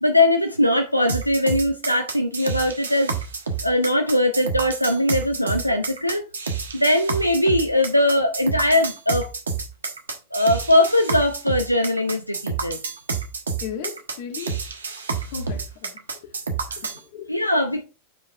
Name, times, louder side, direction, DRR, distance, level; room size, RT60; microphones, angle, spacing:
voice 1, 0.0-3.1 3.6-6.2 6.7-9.3 10.3-12.8 17.3-17.8, left 1 dB, 90° left, 0.6 m, -20 dB
sound 1, 1.1-17.0, right 5 dB, 70° right, 1.3 m, -29 dB
voice 2, 13.6-14.5 15.2-16.3 16.7-17.3, left 7 dB, 50° left, 2.2 m, -36 dB
8.9 x 4.7 x 3.2 m
figure-of-eight pair, 90°, 0 cm